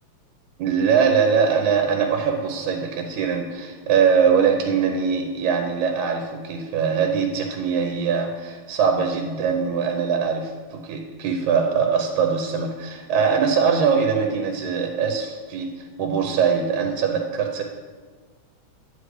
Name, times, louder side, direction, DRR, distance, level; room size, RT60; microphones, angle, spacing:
voice 1, 0.6-17.6, right 6 dB, 90° right, 3 dB, 2.1 m, -22 dB
10.0 x 9.2 x 3.1 m, 1.5 s
omnidirectional pair, 3.3 m